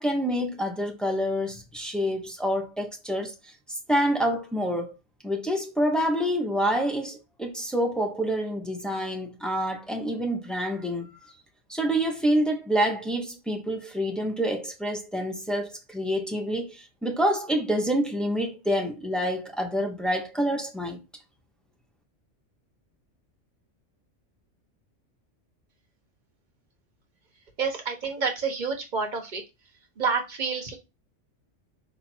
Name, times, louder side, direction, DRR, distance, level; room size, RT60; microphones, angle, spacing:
voice 1, 0.0-3.3 3.7-4.9 5.2-11.3 11.7-21.0, equal, ahead, 0.6 m, -27 dB
voice 2, 27.6-29.4 30.0-30.7, right 5 dB, 40° right, 1.1 m, -28 dB
4.4 x 2.7 x 4.2 m
omnidirectional pair, 1.3 m